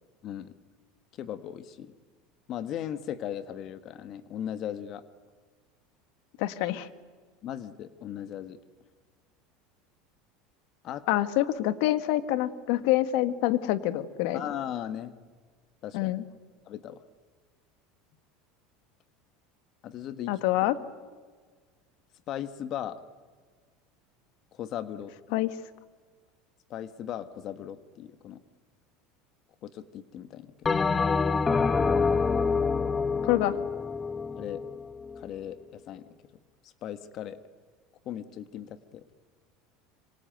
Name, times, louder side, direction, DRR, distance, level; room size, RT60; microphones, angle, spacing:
voice 1, 0.2-0.5 1.1-1.9 2.5-5.0 7.4-8.6 10.8-11.0 14.3-15.1 15.8-16.1 16.7-17.0 19.8-20.3 22.3-23.0 24.5-25.1 26.7-28.4 29.6-30.8 34.4-34.6 35.2-35.6 35.9-36.0 36.6-37.4 38.0-39.0, left 10 dB, 45° left, 12 dB, 1.5 m, -37 dB
voice 2, 6.4-6.9 11.1-14.4 15.9-16.2 20.3-20.7 25.3-25.5 33.2-33.6, left 15 dB, 70° left, 13 dB, 1.7 m, -26 dB
Bell, 30.7-35.3, left 4 dB, 20° left, 0.9 m, -26 dB
26.0 x 25.0 x 9.2 m, 1.5 s
supercardioid pair, 125°, 0 cm